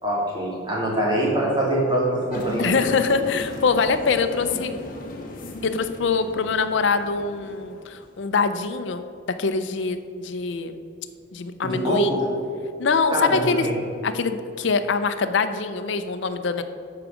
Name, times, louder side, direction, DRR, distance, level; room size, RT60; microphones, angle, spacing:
voice 1, 0.0-2.7 11.6-12.2 13.1-13.8, right 1 dB, 25° right, -5 dB, 2.2 m, -23 dB
sound 1, 2.3-8.3, left 1 dB, 45° left, 1.0 m, -37 dB
voice 2, 2.6-4.7 5.6-9.0 9.4-10.8 11.3-12.2 12.8-13.7 14.0-16.6, left 4 dB, 70° left, 9 dB, 0.5 m, -24 dB
8.6 x 4.8 x 6.2 m, 2.5 s
head